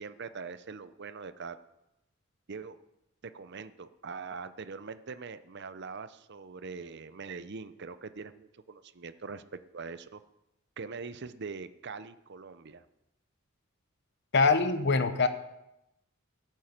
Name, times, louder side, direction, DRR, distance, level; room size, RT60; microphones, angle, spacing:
voice 1, 0.0-1.6 2.5-2.8 3.2-10.2 10.8-12.8, right 4 dB, 55° right, 13 dB, 0.7 m, -42 dB
voice 2, 14.3-15.3, left 4 dB, 55° left, 10 dB, 1.1 m, -24 dB
13.5 x 9.3 x 6.0 m, 0.89 s
head